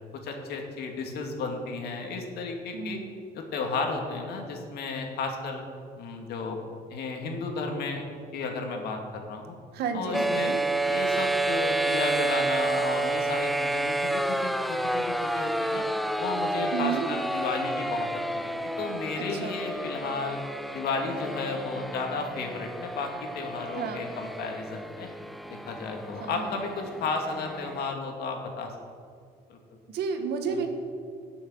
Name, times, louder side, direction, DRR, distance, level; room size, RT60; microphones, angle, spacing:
voice 1, 0.2-3.0 3.3-5.6 6.0-6.6 6.9-8.1 8.3-9.5 9.9-10.5 10.8-15.8 16.2-18.1 18.3-20.4 20.7-25.1 25.7-28.7 29.5-29.6 30.5-30.6, left 4 dB, 75° left, 2 dB, 2.3 m, -33 dB
voice 2, 2.7-3.1 9.7-10.6 16.7-17.1 19.4-19.6 23.8-24.0 26.2-26.5 29.9-30.7, right 6 dB, 75° right, 5 dB, 1.8 m, -31 dB
sound 1, 10.1-27.9, right 2 dB, ahead, 0.4 m, -30 dB
17.0 x 7.1 x 6.4 m, 2.3 s
cardioid pair, 110°, 17 cm